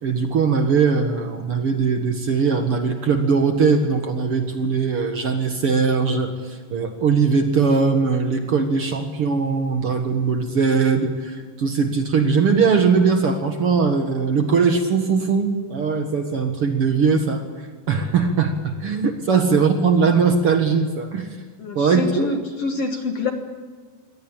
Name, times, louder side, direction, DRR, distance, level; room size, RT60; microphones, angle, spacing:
voice 1, 0.0-17.4 17.9-21.4 21.7-22.3, right 5 dB, 55° right, 5 dB, 1.5 m, -20 dB
voice 2, 21.6-23.3, left 3 dB, 55° left, 5 dB, 1.8 m, -26 dB
24.5 x 18.0 x 8.9 m, 1.5 s
omnidirectional pair, 4.8 m